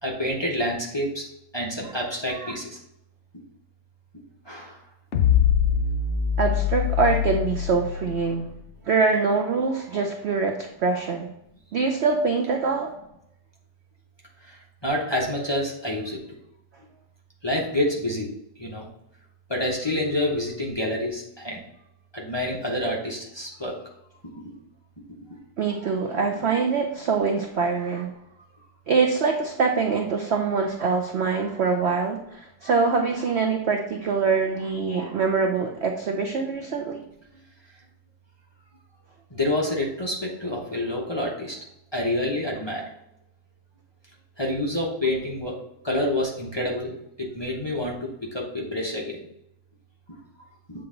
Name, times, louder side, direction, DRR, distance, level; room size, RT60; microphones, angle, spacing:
voice 1, 0.0-1.2 1.5-2.8 4.4-4.8 14.4-16.2 17.4-18.3 18.6-18.9 19.5-21.6 22.1-23.7 25.3-25.4 39.3-41.6 41.9-42.8 44.4-45.5 45.8-49.2, left 1 dB, 20° left, -2 dB, 0.7 m, -28 dB
sound 1, 5.1-8.5, left 9 dB, 55° left, 0.9 m, -23 dB
voice 2, 6.4-8.5 8.8-11.3 11.7-12.9 25.6-28.1 28.9-37.0, right 4 dB, 75° right, 4 dB, 0.6 m, -24 dB
7.7 x 3.9 x 3.8 m, 0.81 s
omnidirectional pair, 1.9 m